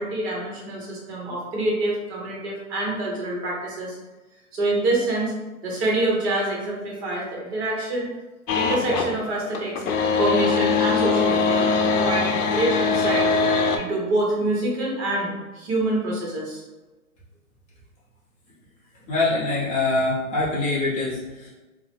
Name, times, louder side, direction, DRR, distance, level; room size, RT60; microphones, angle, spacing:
voice 1, 0.0-4.0 4.5-5.3 5.6-8.1 8.5-9.8 10.2-13.3 13.7-16.6, right 2 dB, 45° right, -3 dB, 1.1 m, -26 dB
sound 1, 8.5-9.1 9.5-13.8, left 4 dB, 85° left, 0.6 m, -21 dB
voice 2, 19.1-21.5, left 2 dB, 15° left, -9 dB, 0.7 m, -24 dB
2.8 x 2.0 x 3.3 m, 1.1 s
hypercardioid pair, 150°, 44 cm